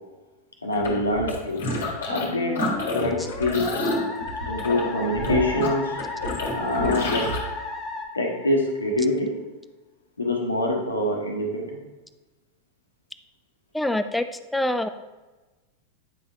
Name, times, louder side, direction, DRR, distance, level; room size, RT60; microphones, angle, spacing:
voice 1, 0.6-1.7 2.1-2.7 2.9-3.8 4.5-6.0 6.5-7.4 8.1-9.3 10.2-11.8, left 1 dB, 80° left, 0 dB, 1.2 m, -25 dB
sound 1, 0.7-2.3 2.5-7.4, left 1 dB, 60° left, 1.5 m, -29 dB
Musical instrument, 2.1-9.0, left 3 dB, 20° left, 0.9 m, -34 dB
voice 2, 13.7-14.2 14.5-14.9, left 1 dB, 5° left, 10 dB, 0.4 m, -24 dB
9.1 x 5.4 x 2.7 m, 1.2 s
figure-of-eight pair, 90°, 0 cm